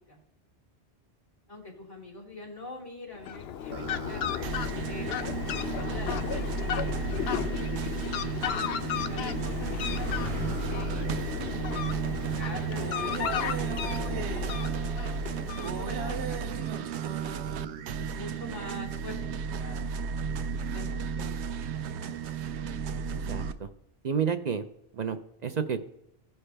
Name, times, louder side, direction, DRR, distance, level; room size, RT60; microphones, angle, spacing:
voice 1, 1.5-4.2 4.8-5.2 5.7-8.0 9.1-10.1 10.6-14.7 15.5-16.9 17.9-19.9 20.7-21.4, left 1 dB, 20° left, -5 dB, 2.8 m, -44 dB
Fowl, 3.2-16.2, left 9 dB, 75° left, 0.8 m, -34 dB
sound 1, 3.7-23.5, right 6 dB, 90° right, 0.9 m, -33 dB
sound 2, 5.8-16.5 17.3-17.7, left 3 dB, 50° left, 3.6 m, -46 dB
voice 2, 23.1-23.7 24.0-24.6 24.9-25.8, right 7 dB, 55° right, 9 dB, 0.5 m, -30 dB
15.5 x 5.6 x 3.3 m, 0.79 s
omnidirectional pair, 1.1 m